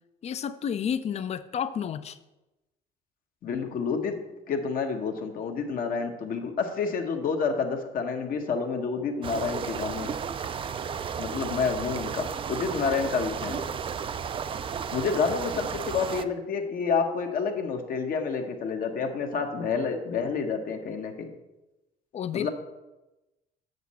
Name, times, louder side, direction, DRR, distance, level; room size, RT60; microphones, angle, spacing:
voice 1, 0.2-2.2 22.1-22.5, left 8 dB, 40° left, 14 dB, 0.5 m, -31 dB
voice 2, 3.4-4.2 4.5-10.1 11.2-13.7 14.9-21.3 22.3-22.5, left 5 dB, 55° left, 4 dB, 1.0 m, -29 dB
sound 1, 9.2-16.3, right 7 dB, 30° right, 0.4 m, -33 dB
8.0 x 6.3 x 4.2 m, 1.0 s
cardioid pair, 110°, 17 cm